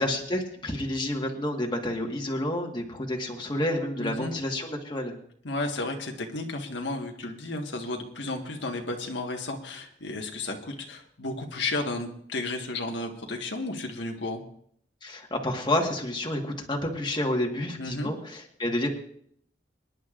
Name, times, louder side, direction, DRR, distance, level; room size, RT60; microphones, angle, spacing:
voice 1, 0.0-5.1 15.0-18.9, left 1 dB, 25° left, 1 dB, 1.5 m, -29 dB
voice 2, 4.0-4.3 5.4-14.4 17.8-18.1, left 2 dB, 80° left, 2 dB, 1.5 m, -33 dB
25.0 x 10.5 x 2.5 m, 0.66 s
head